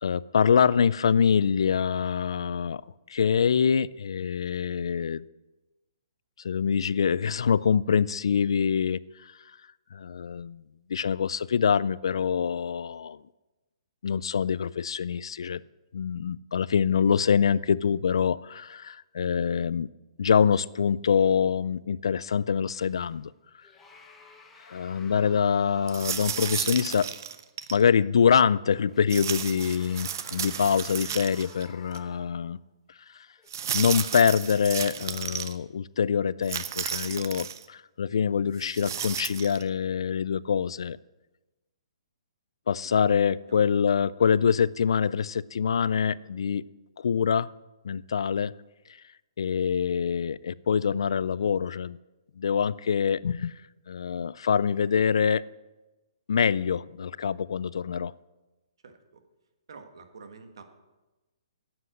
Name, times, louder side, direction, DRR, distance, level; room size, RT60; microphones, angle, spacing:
voice 1, 0.0-2.8 3.1-5.2 6.4-9.3 9.9-10.6 10.9-13.2 14.0-15.6 15.9-19.9 20.2-23.3 24.7-27.1 27.7-32.6 33.7-41.0 42.7-46.6 47.0-47.5 47.8-48.5 49.4-52.0 52.4-53.5 53.9-55.4 56.3-58.1, left 7 dB, 60° left, 20 dB, 0.3 m, -25 dB
sound 1, 22.7-23.2 23.6-26.9 27.3-27.4 28.9-32.6 33.3-33.5, left 3 dB, 5° left, 0.8 m, -53 dB
sound 2, 25.9-27.8 29.1-31.6 31.9-32.0 33.5-35.5 36.4-37.6 38.6-39.6, right 9 dB, 35° right, 0.6 m, -33 dB
voice 2, 59.7-60.6, right 4 dB, 55° right, 7 dB, 1.6 m, -47 dB
11.0 x 7.8 x 8.3 m, 1.1 s
hypercardioid pair, 180°, 3 cm